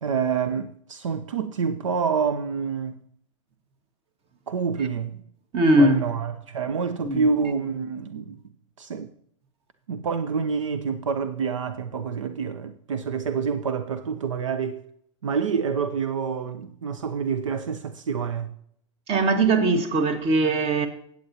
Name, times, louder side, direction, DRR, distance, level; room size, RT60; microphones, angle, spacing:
voice 1, 0.0-3.0 4.5-5.2 5.8-8.4 8.8-9.1 9.9-14.8 15.2-18.5, right 6 dB, 80° right, 0.7 m, -27 dB
voice 2, 5.5-6.1 7.0-7.2 19.1-20.9, right 2 dB, 35° right, 1.7 m, -20 dB
16.0 x 8.2 x 2.9 m
hypercardioid pair, 100°, 16 cm